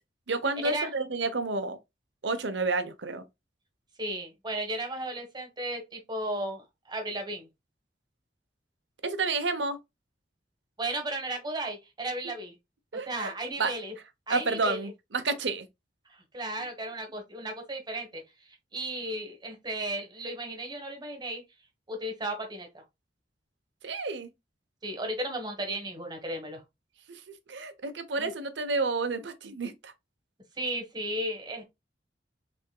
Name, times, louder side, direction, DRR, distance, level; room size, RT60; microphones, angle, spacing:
voice 1, 0.3-1.8 2.2-3.2 9.0-9.8 12.9-13.3 13.6-13.7 14.3-15.7 23.8-24.3 27.1-27.2 27.5-29.9, right 3 dB, 75° right, 0.8 m, -30 dB
voice 2, 4.0-7.5 10.8-12.6 13.1-13.9 14.3-14.9 16.1-18.2 18.7-21.4 21.9-22.7 24.8-26.6 28.2-28.3 30.6-31.6, right 1 dB, 25° right, 1.3 m, -34 dB
5.6 x 3.5 x 2.3 m
head